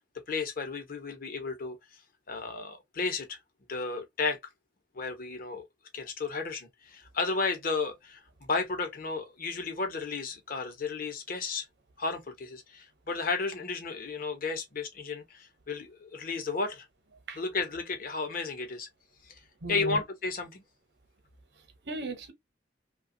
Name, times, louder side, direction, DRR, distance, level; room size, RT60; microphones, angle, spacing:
voice 1, 0.3-1.8 2.3-3.4 3.7-4.4 4.9-5.6 5.9-11.6 12.0-16.9 17.4-18.9 19.2-19.3 19.7-20.6, left 4 dB, 55° left, 0.8 m, -33 dB
voice 2, 19.6-20.0 21.5-22.3, right 1 dB, 70° right, 0.9 m, -37 dB
2.9 x 2.3 x 2.6 m
head